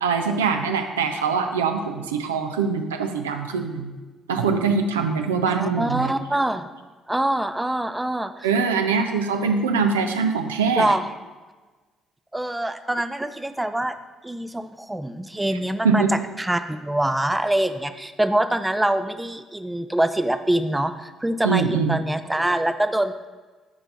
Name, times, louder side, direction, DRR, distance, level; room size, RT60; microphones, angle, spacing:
voice 1, 0.0-3.9 4.3-6.1 8.4-10.9 15.8-16.1 21.4-22.0, right 5 dB, 80° right, 6 dB, 0.4 m, -23 dB
voice 2, 5.4-6.6 7.1-8.5 10.8-11.0 12.3-13.9 14.2-16.0 16.4-23.3, right 1 dB, 10° right, 10 dB, 0.5 m, -24 dB
11.0 x 4.5 x 3.9 m, 1.3 s
figure-of-eight pair, 45°, 0 cm